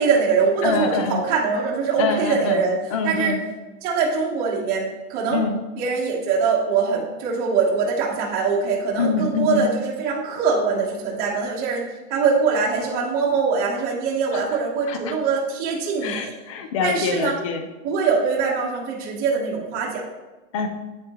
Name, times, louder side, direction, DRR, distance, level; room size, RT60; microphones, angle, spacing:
voice 1, 0.0-2.8 3.0-3.3 3.8-5.4 5.8-11.8 12.1-16.3 16.8-17.3 17.8-20.0, right 5 dB, 20° right, -3 dB, 1.1 m, -23 dB
voice 2, 0.6-1.2 2.0-2.6 2.9-3.4 5.3-5.6 9.0-9.7 14.3-14.6 14.9-15.1 16.0-17.7 20.5-20.7, left 5 dB, 25° left, 7 dB, 0.4 m, -25 dB
8.4 x 8.2 x 3.0 m, 1.1 s
supercardioid pair, 175°, 41 cm